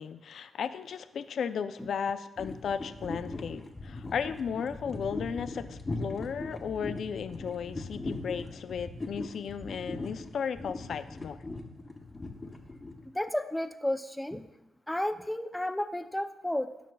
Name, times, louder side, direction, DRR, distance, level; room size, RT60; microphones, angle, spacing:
voice 1, 0.0-11.4, left 7 dB, 65° left, 11 dB, 0.5 m, -35 dB
sound 1, 2.4-13.3, left 2 dB, 25° left, 1.0 m, -39 dB
voice 2, 13.1-14.5 14.9-16.7, left 1 dB, 5° left, 9 dB, 0.5 m, -32 dB
17.0 x 6.1 x 2.3 m, 0.92 s
cardioid pair, 105°, 0 cm